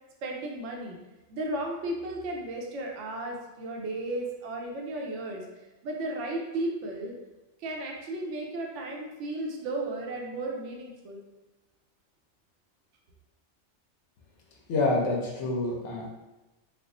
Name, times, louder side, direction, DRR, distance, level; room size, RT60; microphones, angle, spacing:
voice 1, 0.2-1.0 1.3-5.4 5.8-7.1 7.6-11.2, right 2 dB, 75° right, 0 dB, 0.9 m, -34 dB
voice 2, 14.7-16.1, left 2 dB, 75° left, -1 dB, 1.0 m, -27 dB
3.4 x 2.0 x 3.7 m, 1.1 s
omnidirectional pair, 1.2 m